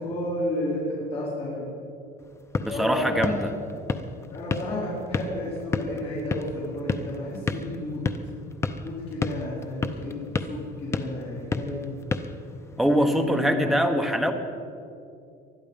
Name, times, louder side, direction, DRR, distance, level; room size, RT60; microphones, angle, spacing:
voice 1, 0.0-1.7 2.7-3.4 4.3-8.1 8.8-11.9 12.9-13.8, left 1 dB, 30° left, -7 dB, 4.3 m, -32 dB
sound 1, 2.2-13.0, left 3 dB, 15° left, 0.6 m, -33 dB
voice 2, 2.6-3.5 12.8-14.3, equal, ahead, 4 dB, 1.1 m, -23 dB
20.0 x 12.5 x 5.3 m, 2.5 s
cardioid pair, 160°, 18 cm